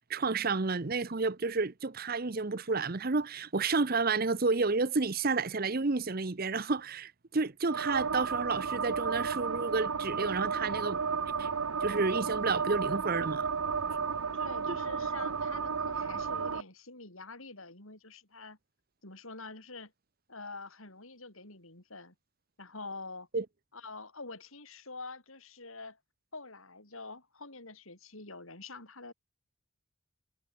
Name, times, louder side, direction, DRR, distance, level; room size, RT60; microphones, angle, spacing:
voice 1, 0.1-11.0 11.4-11.5 11.8-13.5 14.7-14.8 23.3-23.4, right 4 dB, 40° right, 0.8 m, -30 dB
sound 1, 7.7-16.6, right 5 dB, 80° right, 0.9 m, -33 dB
voice 2, 14.3-18.6 19.0-19.9 20.3-22.1 22.6-23.3 23.7-26.0 26.3-29.1, left 3 dB, 70° left, 6.2 m, -46 dB
head